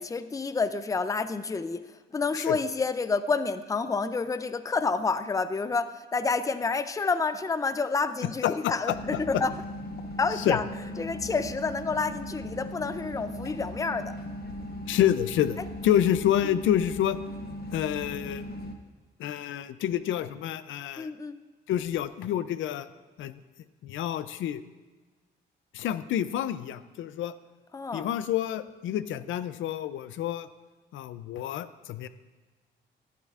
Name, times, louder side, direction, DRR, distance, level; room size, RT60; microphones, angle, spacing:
voice 1, 0.0-9.5 10.2-10.6 11.0-14.1 16.4-16.6 21.0-21.4 27.7-28.1, left 4 dB, 15° left, 12 dB, 0.5 m, -29 dB
voice 2, 8.4-9.2 10.5-10.6 14.9-15.6 15.8-17.2 17.7-18.4 19.2-21.1 21.7-22.9 23.2-23.3 23.8-24.6 25.7-27.3 27.9-30.5 30.9-32.1, left 11 dB, 75° left, 14 dB, 0.5 m, -28 dB
sound 1, 8.9-18.7, left 1 dB, 55° left, 1.2 m, -38 dB
15.0 x 11.0 x 2.4 m, 1.3 s
cardioid pair, 90°, 20 cm